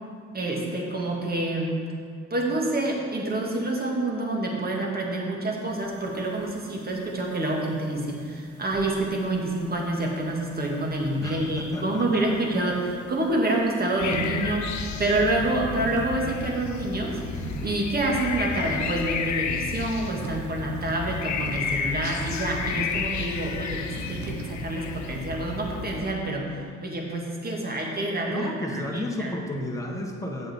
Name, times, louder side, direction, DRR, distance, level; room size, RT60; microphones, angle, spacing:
voice 1, 0.3-1.7 2.3-17.2 17.6-29.3, right 2 dB, 30° right, -1 dB, 1.8 m, -27 dB
sound 1, 5.7-25.3, right 4 dB, 50° right, 0.9 m, -43 dB
voice 2, 11.2-12.2 28.3-30.5, left 1 dB, 10° left, 0 dB, 1.3 m, -33 dB
sound 2, 14.0-26.0, left 6 dB, 70° left, 0.7 m, -32 dB
8.5 x 7.6 x 4.3 m, 2.1 s
cardioid pair, 90°, 30 cm